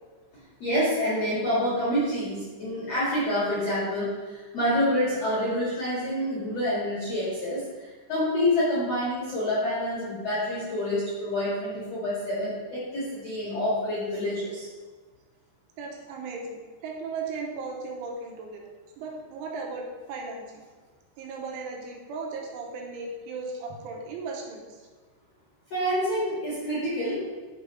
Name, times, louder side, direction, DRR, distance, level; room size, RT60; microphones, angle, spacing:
voice 1, 0.6-14.7 25.7-27.2, left 1 dB, 55° left, -8 dB, 1.8 m, -27 dB
voice 2, 15.8-18.6 19.0-20.5 21.2-24.7, right 4 dB, 85° right, -1 dB, 3.5 m, -36 dB
9.9 x 3.6 x 5.4 m, 1.4 s
omnidirectional pair, 5.6 m